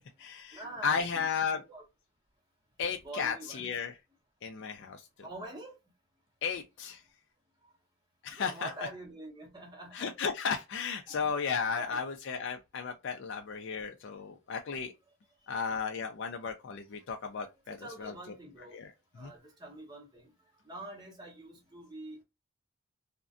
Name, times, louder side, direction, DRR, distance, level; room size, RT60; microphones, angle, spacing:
voice 1, 0.0-1.6 2.8-3.9 4.4-5.1 6.4-7.0 8.2-8.7 9.9-14.9 15.5-18.1 18.7-18.9 19.2-19.3, left 6 dB, 55° left, 0.4 m, -34 dB
voice 2, 0.5-1.8 2.8-3.7 5.2-5.8 8.3-10.1 11.0-12.0 15.6-15.7 17.4-18.8 19.1-20.3 20.6-22.2, right 1 dB, 20° right, 0.7 m, -46 dB
2.5 x 2.1 x 2.3 m
head